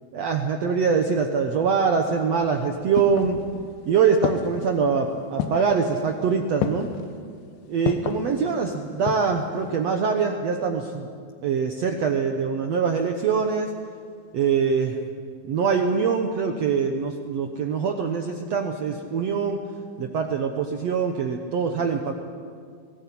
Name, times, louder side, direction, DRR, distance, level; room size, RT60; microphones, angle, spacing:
voice 1, 0.1-3.4 3.9-6.9 7.7-11.1 11.4-13.7 14.3-15.0 15.5-19.6 20.0-22.1, right 5 dB, 70° right, 4 dB, 1.5 m, -23 dB
sound 1, 2.4-3.8 4.2-4.8 5.4-5.8 6.6-7.0 7.9-8.3 8.8-9.4 9.7-9.8, left 9 dB, 85° left, 2.9 m, -29 dB
21.0 x 17.5 x 8.6 m, 2.1 s
omnidirectional pair, 4.4 m